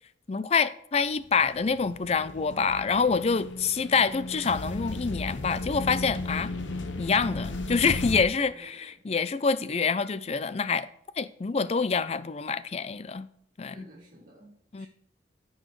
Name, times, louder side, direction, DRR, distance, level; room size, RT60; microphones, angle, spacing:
voice 1, 0.3-6.5 7.0-10.9 11.2-13.3 13.6-13.8 14.7-14.9, left 5 dB, 35° left, 0.4 m, -26 dB
sound 1, 1.2-8.2, left 2 dB, 90° left, 0.9 m, -35 dB
voice 2, 6.4-6.8 8.4-8.9 13.7-14.9, right 1 dB, 50° right, 2.5 m, -52 dB
15.0 x 6.4 x 3.1 m
head